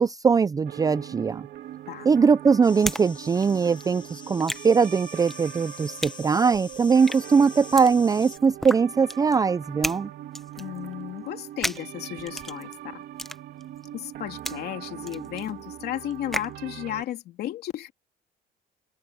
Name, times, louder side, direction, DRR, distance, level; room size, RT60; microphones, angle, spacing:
voice 1, 0.0-1.5 2.1-10.1, right 5 dB, 20° right, 0.4 m, -21 dB
sound 1, 0.7-17.0, right 12 dB, 70° right, 2.8 m, -41 dB
sound 2, 1.6-3.1 3.3-16.6, equal, ahead, 0.8 m, -36 dB
sound 3, 2.6-8.4, left 5 dB, 25° left, 1.3 m, -45 dB
voice 2, 10.6-12.7 13.9-17.9, left 13 dB, 70° left, 3.1 m, -34 dB
cardioid pair, 110°, 17 cm